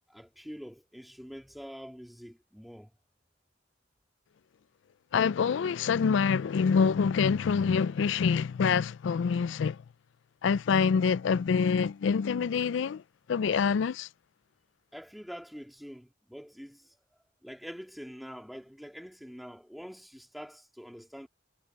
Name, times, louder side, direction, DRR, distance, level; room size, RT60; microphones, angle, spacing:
voice 1, 0.1-2.9 14.9-17.0 17.4-21.3, equal, ahead, 2.5 m, -45 dB
voice 2, 5.1-9.8 10.4-13.0 13.3-14.1, left 6 dB, 70° left, 0.4 m, -26 dB
head